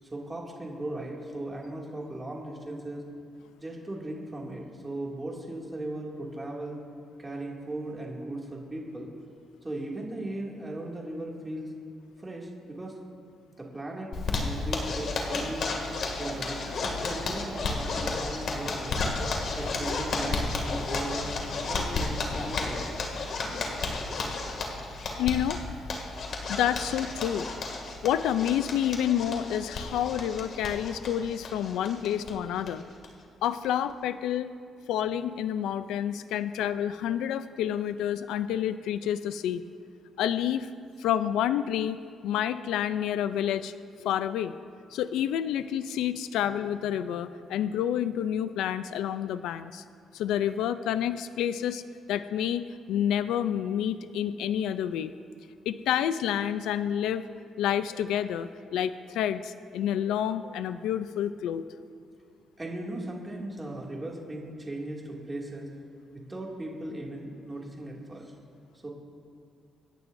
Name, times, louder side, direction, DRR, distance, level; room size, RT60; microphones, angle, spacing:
voice 1, 0.0-3.0 3.6-6.8 7.2-9.1 9.6-11.7 12.2-13.0 13.6-15.7 16.2-19.0 19.6-22.9 62.6-65.7 66.1-68.3 68.8-68.9, right 1 dB, 20° right, -3 dB, 2.4 m, -37 dB
Zipper (clothing), 14.1-32.3 32.6-32.7 33.0-33.1 33.4-33.9, left 3 dB, 60° left, 2.3 m, -32 dB
voice 2, 25.2-25.6 26.5-27.5 28.0-32.8 33.4-34.5 34.9-39.6 40.2-40.7 41.0-43.7 44.0-44.5 44.9-49.8 50.1-51.8 52.1-55.1 55.7-57.3 57.6-61.6, left 10 dB, 90° left, 12 dB, 0.4 m, -29 dB
27.0 x 11.0 x 2.7 m, 2.4 s
cardioid pair, 90°, 0 cm